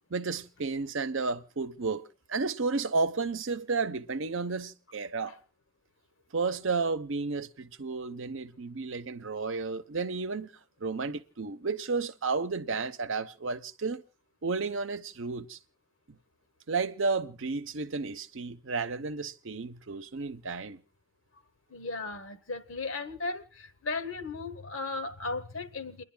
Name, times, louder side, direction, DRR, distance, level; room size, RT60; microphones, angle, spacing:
voice 1, 0.1-5.4 6.3-10.5 10.8-14.0 14.4-15.6 16.1-16.2 16.7-20.8, right 4 dB, 70° right, 0.8 m, -32 dB
voice 2, 21.7-26.0, left 3 dB, 75° left, 1.0 m, -36 dB
29.5 x 11.0 x 2.3 m
head